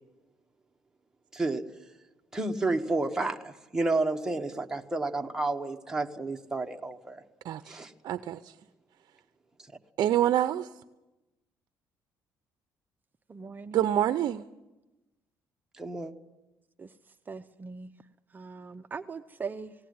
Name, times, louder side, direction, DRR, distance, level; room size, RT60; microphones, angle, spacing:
voice 1, 1.3-1.6 2.3-7.2 7.7-7.9 15.8-16.1, right 2 dB, 10° right, 3 dB, 1.3 m, -30 dB
voice 2, 7.4-7.8 8.0-8.5 10.0-10.7 13.7-14.4, right 11 dB, 60° right, 12 dB, 0.7 m, -26 dB
voice 3, 13.3-14.1 16.8-16.9 17.3-17.9 18.3-19.7, right 5 dB, 25° right, 8 dB, 0.7 m, -40 dB
18.5 x 17.5 x 9.5 m, 1.0 s
cardioid pair, 135°, 7 cm